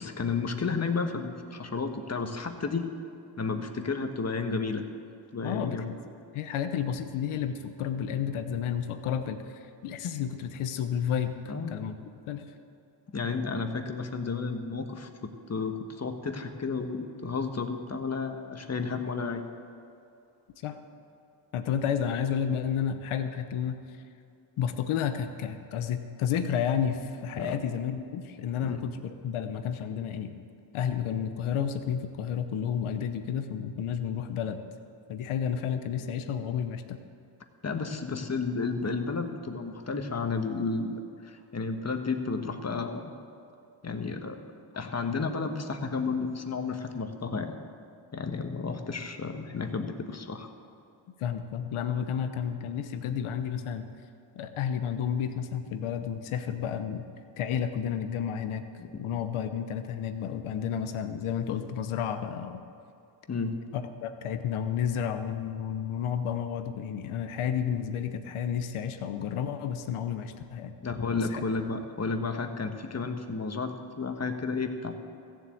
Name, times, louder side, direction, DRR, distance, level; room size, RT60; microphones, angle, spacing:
voice 1, 0.0-2.9 3.4-4.9 5.3-5.9 11.5-11.8 13.1-19.5 27.4-27.6 28.6-28.8 37.6-43.1 43.8-44.4 44.7-47.6 48.1-50.5 58.8-58.9 63.3-63.6 70.8-75.0, left 4 dB, 30° left, 6 dB, 1.4 m, -32 dB
voice 2, 5.4-5.8 6.3-11.4 11.7-12.0 12.3-12.4 20.6-20.8 21.5-23.8 24.6-30.4 30.7-34.6 35.1-37.0 51.2-53.9 54.3-57.0 57.4-58.7 59.0-62.6 63.7-70.7 71.3-71.4, left 8 dB, 90° left, 9 dB, 1.0 m, -31 dB
15.0 x 7.6 x 8.5 m, 2.6 s
cardioid pair, 75°, 48 cm